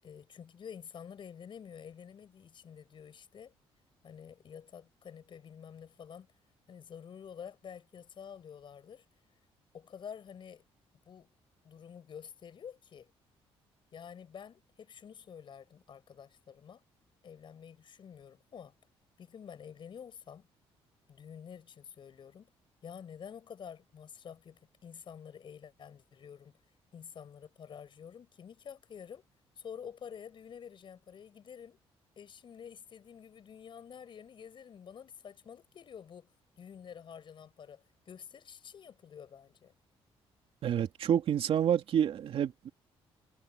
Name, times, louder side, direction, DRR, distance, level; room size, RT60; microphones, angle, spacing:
voice 1, 0.0-3.5 4.0-6.3 6.7-9.0 9.7-10.6 11.1-11.3 11.6-13.1 13.9-16.8 17.2-18.7 19.2-20.5 21.1-22.5 22.8-26.5 26.9-29.2 29.6-31.8 32.2-36.3 36.6-39.7, left 7 dB, 50° left, 6.3 m, -49 dB
voice 2, 40.6-42.7, right 9 dB, 60° right, 2.9 m, -28 dB
cardioid pair, 100°, 11 cm